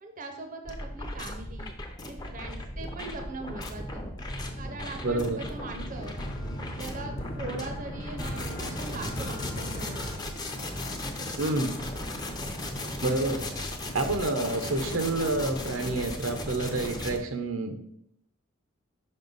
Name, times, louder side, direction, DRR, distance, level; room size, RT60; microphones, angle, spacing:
voice 1, 0.0-1.7 2.0-4.0 4.6-6.2 6.7-10.0, right 2 dB, 40° right, 5 dB, 0.6 m, -41 dB
sound 1, 0.6-17.2, left 1 dB, 20° left, 0.6 m, -36 dB
sound 2, 3.3-11.0, equal, 65° left, 1.0 m, -41 dB
voice 2, 5.0-5.4 11.4-11.8 13.0-17.8, right 2 dB, 70° right, 7 dB, 0.7 m, -29 dB
5.4 x 5.3 x 3.9 m, 0.74 s
head